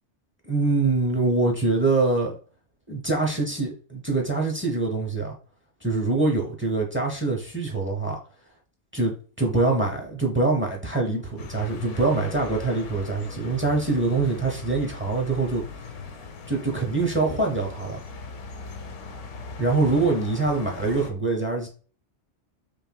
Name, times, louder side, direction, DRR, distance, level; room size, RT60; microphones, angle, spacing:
voice 1, 0.4-2.3 2.9-5.4 5.8-8.2 8.9-15.6 16.5-18.0 19.6-21.7, right 3 dB, 15° right, 0.6 m, -24 dB
sound 1, 11.4-21.1, left 5 dB, 85° left, 1.0 m, -39 dB
5.7 x 2.3 x 2.2 m
omnidirectional pair, 1.2 m